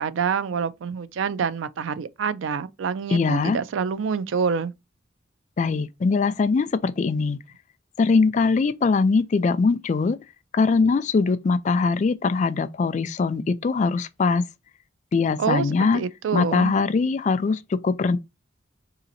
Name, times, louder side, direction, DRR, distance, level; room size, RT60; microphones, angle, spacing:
voice 1, 0.0-4.7 15.4-16.7, right 6 dB, 85° right, 0.4 m, -27 dB
voice 2, 3.1-3.6 5.6-7.4 8.0-10.2 10.5-14.4 15.1-16.0 16.3-18.2, left 4 dB, 40° left, 0.3 m, -22 dB
4.9 x 2.8 x 2.6 m
head